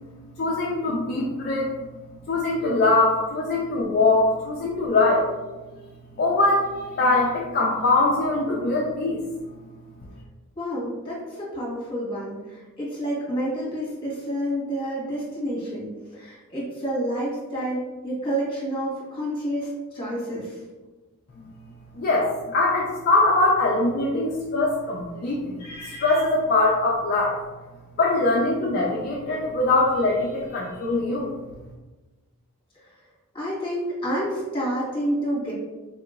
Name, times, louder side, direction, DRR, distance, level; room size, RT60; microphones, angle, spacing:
voice 1, 0.4-1.7 2.1-5.3 5.7-5.8 6.2-9.2 21.4-21.5 21.9-27.4 28.0-31.3, left 2 dB, 45° left, -3 dB, 0.4 m, -22 dB
voice 2, 10.5-15.9 16.1-19.7 19.9-20.6 33.3-35.5, equal, 25° left, -7 dB, 1.4 m, -29 dB
3.5 x 2.8 x 2.4 m, 1.2 s
head